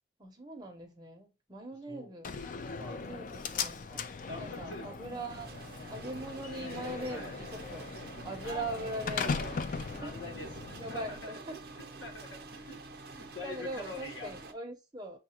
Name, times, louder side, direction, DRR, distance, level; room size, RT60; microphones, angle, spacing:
voice 1, 0.2-2.3 3.0-4.1 4.4-5.5 5.9-7.9 8.2-10.1 10.8-11.6 13.4-15.2, right 1 dB, 20° right, 0.8 m, -41 dB
Slam, 2.2-11.2, left 5 dB, 45° left, 0.3 m, -39 dB
voice 2, 2.7-3.1 4.2-4.9 6.0-6.1 7.1-7.3 8.4-8.6 9.8-11.3 11.8-12.8 13.1-14.3, left 2 dB, 75° left, 1.2 m, -44 dB
sound 1, 5.3-14.5, right 3 dB, 55° right, 0.7 m, -47 dB
6.5 x 2.3 x 2.8 m
head